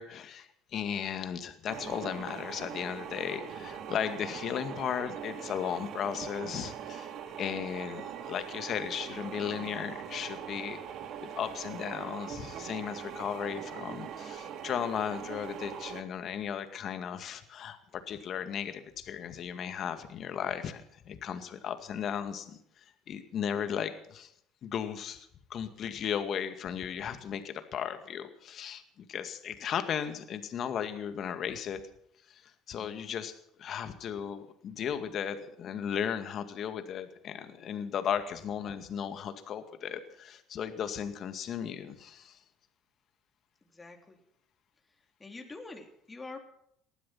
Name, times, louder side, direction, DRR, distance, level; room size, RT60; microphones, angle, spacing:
voice 1, 0.0-7.1 7.4-10.8 11.2-24.3 24.6-31.8 32.3-42.4, left 8 dB, 50° left, 9 dB, 2.1 m, -36 dB
sound 1, 1.7-16.0, right 8 dB, 60° right, 1.9 m, -41 dB
voice 2, 32.7-33.1 43.7-44.2 45.2-46.4, left 3 dB, 20° left, 3 dB, 3.4 m, -46 dB
19.0 x 12.5 x 5.9 m, 0.70 s
hypercardioid pair, 70°, 0 cm